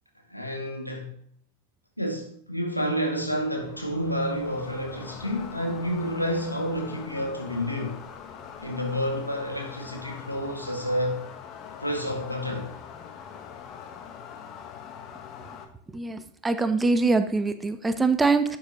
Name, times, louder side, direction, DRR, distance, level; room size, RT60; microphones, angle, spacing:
voice 1, 0.3-1.1 2.0-8.0 8.6-11.2 11.8-12.7, equal, 90° left, 1.9 m, -29 dB
sound 1, 3.1-15.7, left 7 dB, 35° left, 1.1 m, -43 dB
voice 2, 15.9-18.6, right 3 dB, 10° right, 0.7 m, -23 dB
11.5 x 7.5 x 2.9 m
figure-of-eight pair, 90°, 0 cm